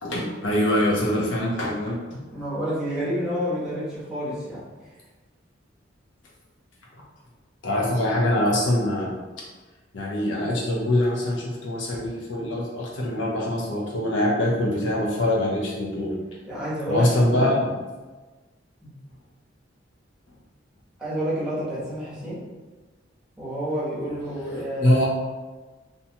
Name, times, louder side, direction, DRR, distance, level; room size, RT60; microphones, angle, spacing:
voice 1, 0.0-2.2 7.6-9.1 9.4-9.5 9.9-16.1 16.9-17.7 24.5-25.1, left 1 dB, 80° left, -4 dB, 0.7 m, -24 dB
voice 2, 2.3-4.6 16.5-17.5 18.8-18.9 21.0-22.4 23.4-25.1, equal, 5° right, -10 dB, 0.9 m, -29 dB
2.7 x 2.2 x 2.8 m, 1.3 s
head